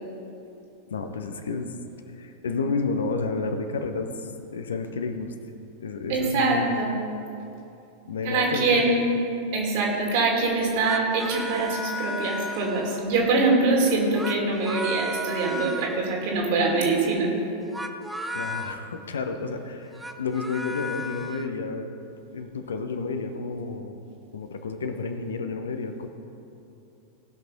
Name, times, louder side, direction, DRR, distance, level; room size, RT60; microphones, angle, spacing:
voice 1, 0.9-1.7 2.1-5.3 5.8-6.8 8.1-8.9 18.3-21.9 22.3-23.9 24.3-26.1, left 4 dB, 65° left, 7 dB, 0.9 m, -31 dB
voice 2, 6.1-6.9 8.2-9.1 9.5-17.3, right 3 dB, 50° right, -1 dB, 2.6 m, -24 dB
sound 1, 10.6-13.1 14.0-16.0 17.6-18.8 19.8-21.5, left 1 dB, 5° right, 0.7 m, -34 dB
18.5 x 6.1 x 5.1 m, 2.7 s
figure-of-eight pair, 90°, 0 cm